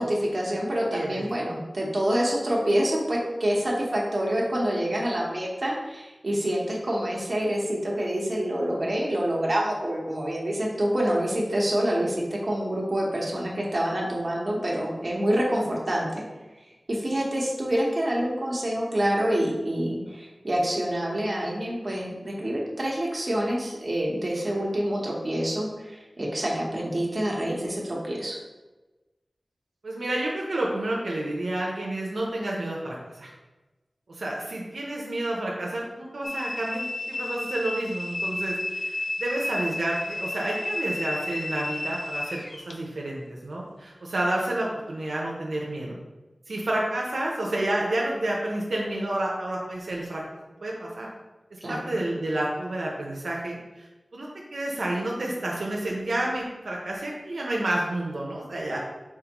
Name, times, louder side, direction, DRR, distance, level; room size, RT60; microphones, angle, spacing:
voice 1, 0.0-16.2 16.9-28.4 51.6-51.8, right 1 dB, 45° right, -3 dB, 1.1 m, -27 dB
voice 2, 29.8-33.3 34.1-46.0 46.5-50.2 50.6-51.1 51.7-53.9 54.1-58.8, right 1 dB, 90° right, -3 dB, 0.7 m, -30 dB
sound 1, 36.2-42.8, left 2 dB, 45° left, 0.4 m, -32 dB
4.4 x 3.6 x 2.9 m, 1.1 s
wide cardioid pair, 65°, 0 cm